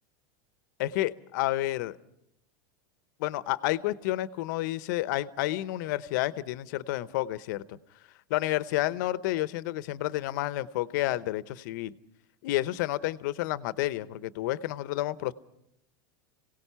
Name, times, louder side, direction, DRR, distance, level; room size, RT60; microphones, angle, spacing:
voice 1, 0.8-2.0 3.2-7.8 8.3-11.9 12.4-15.3, left 16 dB, 65° left, 15 dB, 0.9 m, -30 dB
26.0 x 17.5 x 5.7 m, 0.79 s
supercardioid pair, 145°, 11 cm